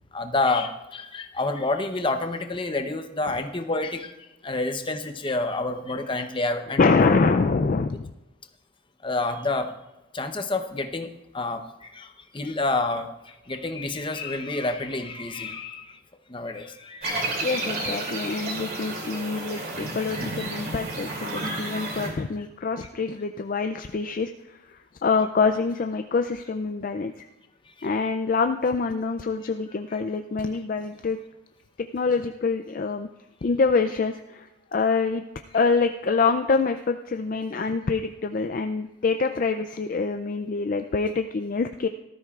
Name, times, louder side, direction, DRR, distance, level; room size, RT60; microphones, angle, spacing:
voice 1, 0.1-4.1 4.4-6.8 9.0-9.7 10.1-16.0 16.3-17.5 17.8-18.2 19.5-19.7 20.5-20.6 27.8-27.9, left 2 dB, 25° left, 6 dB, 0.8 m, -29 dB
voice 2, 6.8-8.1 17.4-27.3 27.8-31.2 31.8-33.1 33.4-35.2 35.5-41.9, left 4 dB, 40° left, 7 dB, 0.4 m, -25 dB
sound 1, 17.0-22.1, right 2 dB, 45° right, 2.7 m, -31 dB
18.5 x 13.0 x 2.4 m, 0.97 s
head